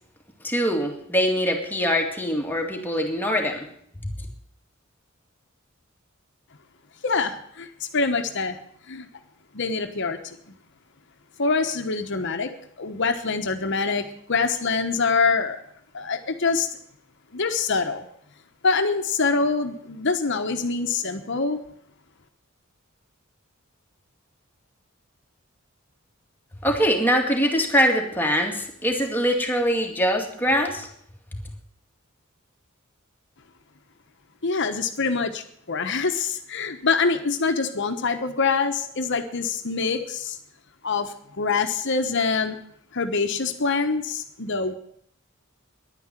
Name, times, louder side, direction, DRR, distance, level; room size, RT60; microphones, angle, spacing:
voice 1, 0.4-3.7 4.0-4.1 26.6-30.9 31.4-31.5, equal, 10° left, 1 dB, 2.3 m, -23 dB
voice 2, 7.0-8.6 8.9-9.1 9.5-10.5 11.4-12.5 12.8-15.6 15.9-16.7 17.3-18.1 18.6-21.6 34.4-40.4 40.8-42.6 42.9-44.8, left 4 dB, 60° left, 7 dB, 1.2 m, -25 dB
11.0 x 9.8 x 9.0 m, 0.66 s
head